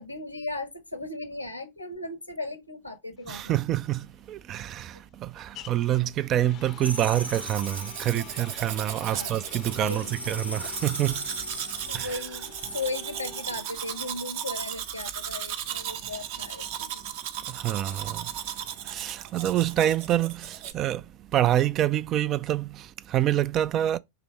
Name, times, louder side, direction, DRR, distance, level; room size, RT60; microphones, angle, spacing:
voice 1, 0.0-3.5 9.1-9.4 9.7-10.2 11.9-17.0, left 2 dB, 85° left, 1.3 m, -36 dB
sound 1, 3.2-17.0, left 10 dB, 35° left, 0.6 m, -49 dB
voice 2, 3.3-11.3 11.7-12.2 17.5-18.3 18.8-21.1 21.3-24.0, right 12 dB, 35° right, 0.4 m, -27 dB
sound 2, 6.8-8.3 9.6-12.2, right 1 dB, 85° right, 0.8 m, -38 dB
Domestic sounds home sounds, 7.1-20.7, right 10 dB, 50° right, 0.8 m, -36 dB
5.9 x 3.4 x 5.3 m
figure-of-eight pair, 90°, 0 cm